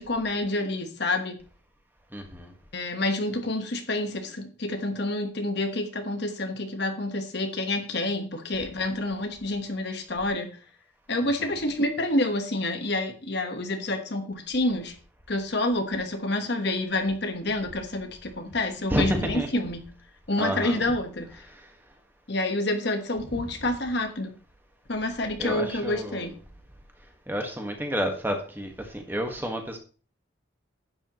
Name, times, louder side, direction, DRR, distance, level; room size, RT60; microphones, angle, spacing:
voice 1, 0.0-1.4 2.7-10.6 11.1-14.9 15.3-19.9 20.3-21.4 22.3-24.4 24.9-26.4, left 2 dB, 55° left, 1.3 m, -28 dB
voice 2, 2.1-2.5 11.4-11.5 18.9-19.5 20.4-20.8 21.5-21.7 25.4-26.2 27.3-29.8, equal, 10° right, 1.6 m, -30 dB
11.0 x 8.9 x 3.1 m
head